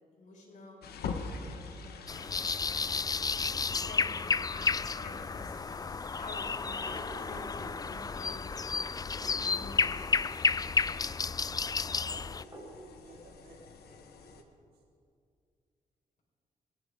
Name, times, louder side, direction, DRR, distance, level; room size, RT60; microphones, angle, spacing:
voice 1, 0.1-3.0 3.8-4.7 5.0-8.6 9.4-9.9, left 2 dB, 55° left, -3 dB, 5.1 m, -49 dB
sound 1, 0.8-14.4, left 5 dB, 90° left, 1.3 m, -47 dB
sound 2, 2.1-12.4, left 5 dB, 25° left, 0.3 m, -32 dB
sound 3, 6.6-7.6 9.0-9.8 11.9-12.8, right 2 dB, 25° right, 5.0 m, -49 dB
voice 2, 10.8-11.3 12.2-14.8, right 2 dB, 80° right, -5 dB, 5.0 m, -60 dB
23.0 x 11.0 x 5.1 m, 2.3 s
cardioid pair, 80°, 16 cm